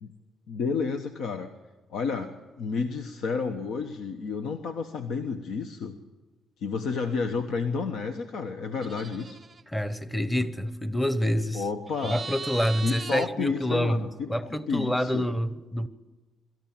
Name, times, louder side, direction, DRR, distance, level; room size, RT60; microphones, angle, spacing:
voice 1, 0.5-1.5 1.9-6.0 6.6-9.4 11.5-12.2 12.8-15.2, left 5 dB, 80° left, 1.2 m, -31 dB
sound 1, 8.8-9.6 11.9-13.3, right 5 dB, 35° right, 0.5 m, -39 dB
voice 2, 9.7-11.6 12.0-15.9, equal, 10° left, 1.1 m, -27 dB
23.0 x 14.0 x 9.0 m
cardioid pair, 90°, 0 cm